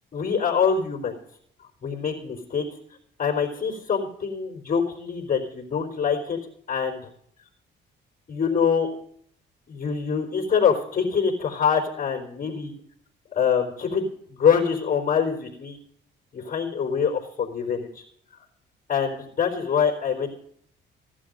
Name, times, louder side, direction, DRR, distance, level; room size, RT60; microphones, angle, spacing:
voice 1, 0.1-1.1 1.8-2.7 3.2-6.4 6.7-7.0 8.3-8.9 9.7-12.7 13.3-15.8 16.3-18.0 18.9-20.3, left 6 dB, 45° left, 0 dB, 4.0 m, -24 dB
16.5 x 11.0 x 5.3 m, 0.64 s
cardioid pair, 90°, 20 cm